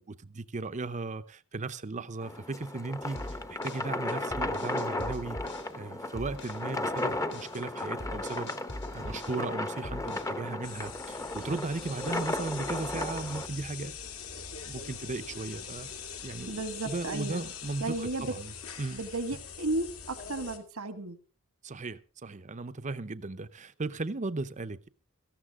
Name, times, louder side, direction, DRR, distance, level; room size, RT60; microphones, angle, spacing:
voice 1, 0.0-8.6 8.9-14.0 14.6-15.9 16.2-18.5 18.8-19.0 21.6-24.9, right 3 dB, 35° right, 0.7 m, -36 dB
sound 1, 2.2-13.5, left 2 dB, 15° left, 0.9 m, -35 dB
sound 2, 3.2-5.7 6.2-6.7 7.0-9.5 9.8-10.4, left 1 dB, 55° left, 2.1 m, -42 dB
sound 3, 10.6-20.6, left 6 dB, 70° left, 2.5 m, -43 dB
voice 2, 16.5-17.4 17.8-18.3 18.9-21.2, right 2 dB, 85° right, 1.8 m, -34 dB
17.5 x 14.0 x 3.7 m
head